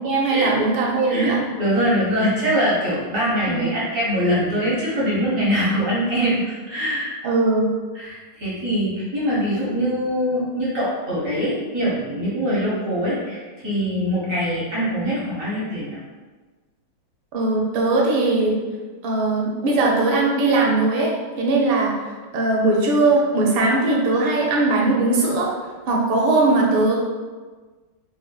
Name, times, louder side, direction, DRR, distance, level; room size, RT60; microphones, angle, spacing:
voice 1, 0.0-1.4 3.5-3.6 7.2-7.7 17.3-18.6 19.0-21.9 22.3-25.5 25.9-27.0, right 2 dB, 75° right, -2 dB, 1.3 m, -19 dB
voice 2, 1.1-7.1 7.9-16.0, equal, 60° right, -8 dB, 0.9 m, -23 dB
5.0 x 2.1 x 2.2 m, 1.4 s
omnidirectional pair, 2.4 m